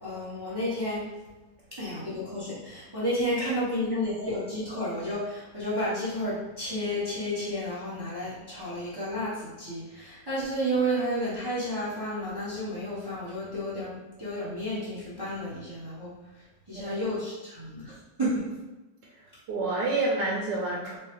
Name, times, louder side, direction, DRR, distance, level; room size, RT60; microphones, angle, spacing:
voice 1, 0.0-1.0 1.8-16.1 16.7-18.5, equal, 20° right, -10 dB, 0.8 m, -31 dB
voice 2, 19.5-21.0, right 2 dB, 90° right, -4 dB, 1.3 m, -29 dB
4.5 x 2.2 x 3.0 m, 1.1 s
omnidirectional pair, 1.9 m